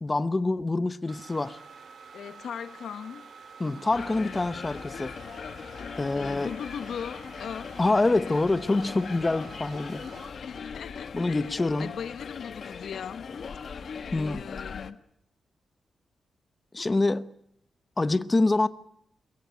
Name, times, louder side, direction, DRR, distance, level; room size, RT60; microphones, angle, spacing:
voice 1, 0.0-1.6 3.6-5.1 6.0-6.5 7.8-10.0 11.1-11.9 14.1-14.5 16.7-17.3 18.0-18.7, left 2 dB, 20° left, 0.8 m, -26 dB
sound 1, 1.1-10.3, right 5 dB, 70° right, 2.9 m, -49 dB
voice 2, 2.1-3.3 4.2-4.5 6.1-7.7 8.1-8.4 10.4-13.3 14.2-15.0, left 7 dB, 80° left, 0.9 m, -39 dB
sound 2, 3.9-14.9, left 6 dB, 55° left, 1.2 m, -40 dB
22.5 x 16.0 x 9.3 m
wide cardioid pair, 140°, 0 cm